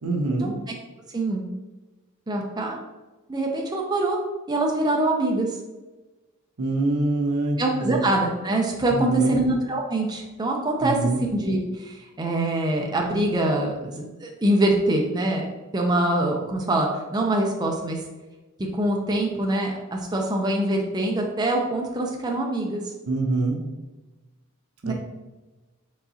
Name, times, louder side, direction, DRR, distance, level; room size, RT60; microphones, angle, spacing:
voice 1, 0.0-0.5 6.6-8.0 8.9-9.4 10.8-11.2 23.1-23.6 24.8-24.9, right 2 dB, 80° right, 2 dB, 0.8 m, -24 dB
voice 2, 1.1-1.5 2.3-2.8 3.3-4.2 4.5-5.6 7.6-15.5 15.7-18.0 18.7-22.8 24.8-24.9, right 1 dB, 20° right, 0 dB, 0.5 m, -24 dB
4.6 x 3.8 x 2.7 m, 1.1 s
head